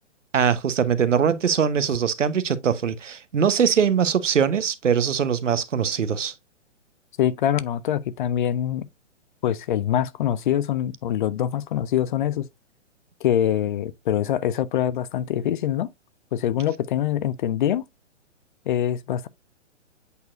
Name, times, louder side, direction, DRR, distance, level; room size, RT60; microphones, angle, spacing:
voice 1, 0.3-6.3, right 7 dB, 80° right, 1.0 m, -22 dB
voice 2, 7.2-8.9 9.4-12.5 13.2-15.9 16.3-17.9 18.7-19.3, left 10 dB, 45° left, 0.6 m, -24 dB
8.3 x 4.5 x 2.5 m
hypercardioid pair, 130°, 37 cm